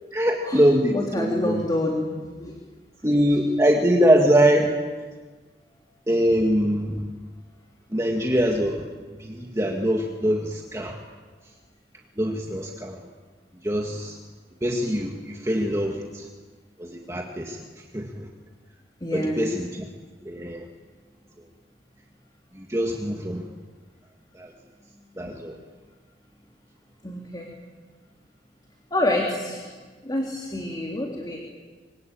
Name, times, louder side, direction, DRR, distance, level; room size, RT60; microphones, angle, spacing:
voice 1, 0.1-1.6 3.0-4.7 6.1-7.1 7.9-8.8 9.2-11.0 12.2-13.0 13.6-14.2 14.6-16.3 16.8-17.6 17.9-18.3 19.1-19.8 20.2-20.6 22.6-23.4 24.4-24.5 25.2-25.5, equal, 15° right, 0 dB, 2.1 m, -23 dB
voice 2, 0.9-2.6 19.0-19.5 25.2-25.3 27.0-27.5 28.9-29.7 30.0-31.4, left 1 dB, 25° left, 0 dB, 3.3 m, -28 dB
25.5 x 24.5 x 8.9 m, 1.4 s
head